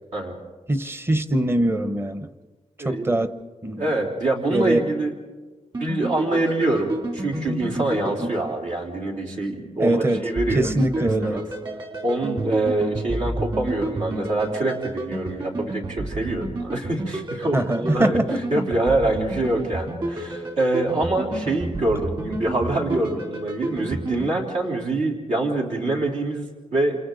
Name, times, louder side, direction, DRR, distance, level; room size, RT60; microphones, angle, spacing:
voice 1, 0.7-2.3 2.8-3.3 3.6-3.9 4.5-4.8 8.2-8.3 9.8-10.2 10.5-11.4 17.5-18.6, right 1 dB, 20° right, 12 dB, 0.9 m, -22 dB
voice 2, 2.8-3.2 3.8-5.2 5.8-10.7 11.0-11.4 12.0-18.2 18.5-27.0, right 2 dB, 80° right, -1 dB, 3.7 m, -25 dB
sound 1, 5.7-9.1 10.4-24.3, right 1 dB, 40° right, 3.1 m, -31 dB
28.5 x 27.5 x 3.9 m, 1.3 s
wide cardioid pair, 140°, 12 cm